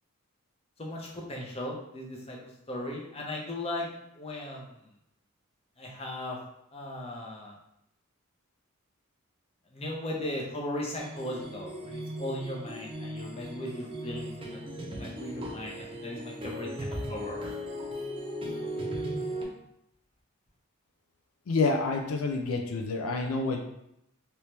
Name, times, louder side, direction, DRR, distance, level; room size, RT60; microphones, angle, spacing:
voice 1, 0.8-3.9 4.1-4.7 5.8-6.4 6.7-7.6 9.7-14.6 14.9-17.4, left 1 dB, 25° left, -2 dB, 0.6 m, -37 dB
sound 1, 11.0-19.4, equal, 25° right, 0.5 m, -37 dB
voice 2, 21.5-23.6, left 3 dB, 75° left, 3 dB, 0.4 m, -28 dB
2.9 x 2.9 x 3.2 m, 0.79 s
head